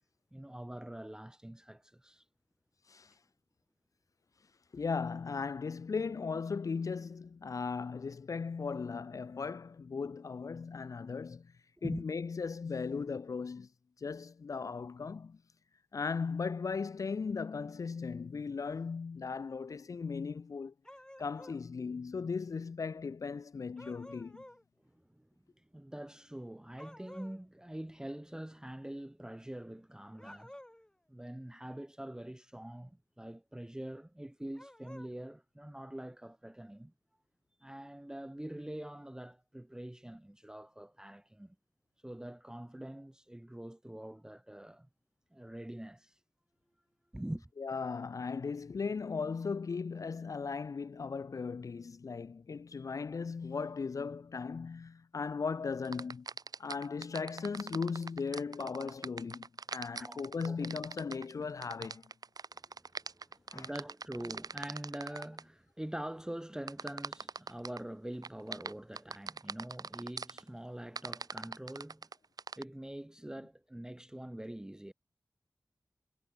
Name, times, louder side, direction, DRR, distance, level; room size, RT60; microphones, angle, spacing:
voice 1, 0.3-2.2 11.8-12.1 24.8-25.3 25.6-30.6 31.1-36.9 37.6-41.6 42.0-44.9 45.3-46.2 47.1-47.5 60.0-60.2 60.4-60.6 62.5-72.1 72.6-74.9, right 1 dB, 10° right, 0.8 m, -44 dB
voice 2, 4.7-11.5 11.8-13.7 14.0-15.4 15.9-20.7 21.2-24.4 47.6-56.3 56.6-62.0 63.5-63.7, left 5 dB, 60° left, 0.4 m, -37 dB
sound 1, 20.8-21.6 23.8-24.6 26.8-27.4 30.1-30.9 34.5-35.1, left 1 dB, 10° left, 2.6 m, -52 dB
sound 2, 55.8-65.4 66.7-67.8 68.2-70.4 71.0-72.6, right 4 dB, 75° right, 2.0 m, -42 dB
wide cardioid pair, 70°, 6 cm